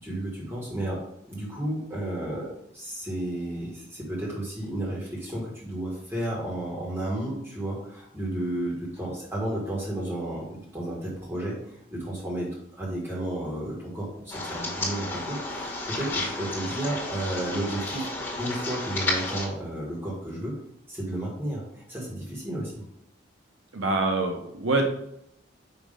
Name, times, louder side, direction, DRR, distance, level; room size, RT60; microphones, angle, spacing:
voice 1, 0.0-18.1 18.4-20.6 20.9-22.8, right 1 dB, 10° right, -5 dB, 1.8 m, -32 dB
sound 1, 14.3-19.5, left 2 dB, 10° left, 1.9 m, -32 dB
voice 2, 23.7-24.8, right 2 dB, 90° right, 3 dB, 0.9 m, -25 dB
5.8 x 3.2 x 5.1 m, 0.75 s
head